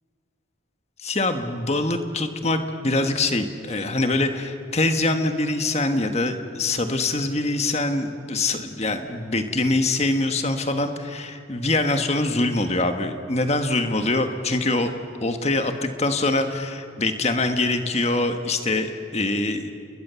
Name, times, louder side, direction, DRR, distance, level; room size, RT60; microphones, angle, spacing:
voice 1, 1.0-14.9 15.2-19.7, left 2 dB, 35° left, 7 dB, 1.5 m, -24 dB
30.0 x 21.0 x 7.0 m, 2.4 s
head